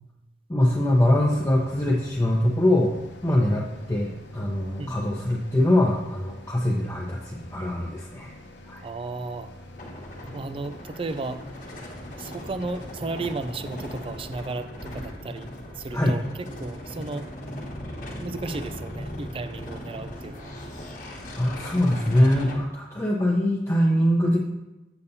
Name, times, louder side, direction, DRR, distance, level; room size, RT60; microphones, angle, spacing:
voice 1, 0.5-2.9 3.2-8.3 8.7-8.8 15.9-16.2 21.4-24.4, left 1 dB, 15° left, -3 dB, 0.8 m, -23 dB
sound 1, 0.6-14.2, left 1 dB, 80° left, 0.9 m, -46 dB
voice 2, 8.8-9.5 10.3-11.4 12.2-15.5 15.8-17.3 18.2-20.5, right 3 dB, 30° right, 11 dB, 0.4 m, -34 dB
sound 2, 9.8-22.6, left 1 dB, 50° left, 1.3 m, -38 dB
8.2 x 6.9 x 2.7 m, 0.99 s
head